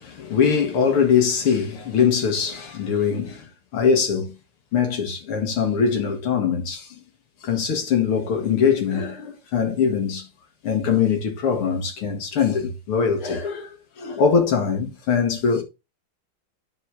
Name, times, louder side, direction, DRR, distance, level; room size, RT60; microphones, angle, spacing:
voice 1, 0.0-3.5 3.7-4.4 4.7-6.9 7.4-10.3 10.6-13.7 14.0-15.6, left 6 dB, 85° left, 2.7 m, -22 dB
10.5 x 4.6 x 3.5 m
omnidirectional pair, 2.3 m